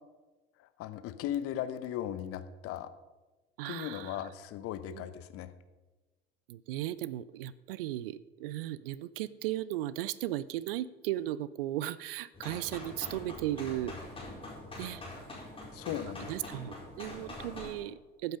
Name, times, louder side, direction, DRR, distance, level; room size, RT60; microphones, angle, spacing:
voice 1, 0.6-2.9 3.6-5.5 15.7-16.5, left 11 dB, 50° left, 12 dB, 1.0 m, -37 dB
voice 2, 3.6-4.2 4.9-5.1 6.5-14.0 14.8-15.0 16.0-18.4, right 14 dB, 70° right, 18 dB, 0.5 m, -36 dB
sound 1, 12.3-17.7, left 2 dB, 20° left, 4.3 m, -44 dB
14.0 x 8.1 x 5.2 m, 1.2 s
figure-of-eight pair, 65°, 30 cm